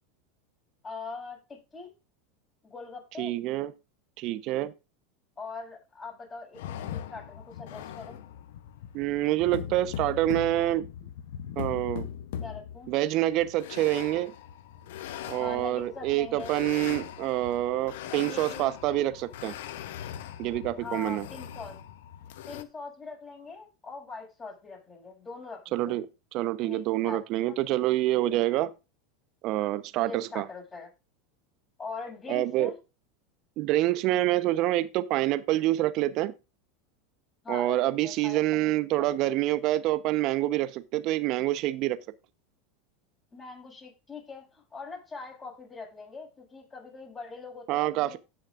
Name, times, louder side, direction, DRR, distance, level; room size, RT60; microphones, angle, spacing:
voice 1, 0.8-1.9 2.6-3.4 5.4-8.2 12.4-12.9 15.4-16.5 18.1-18.7 20.8-21.7 22.5-26.0 26.6-27.2 27.5-27.6 30.0-30.9 31.8-32.8 37.4-39.2 43.3-48.2, left 4 dB, 25° left, 6.6 m, -42 dB
voice 2, 3.2-3.7 4.2-4.7 8.9-10.9 11.6-12.1 12.9-14.3 15.3-19.5 20.4-21.3 25.7-26.1 26.3-28.7 29.4-30.5 32.3-32.7 33.6-36.3 37.5-42.0 47.7-48.2, right 15 dB, 50° right, 0.9 m, -27 dB
sound 1, 6.5-22.6, left 9 dB, 70° left, 0.8 m, -40 dB
17.5 x 6.4 x 2.5 m
hypercardioid pair, 90°, 0 cm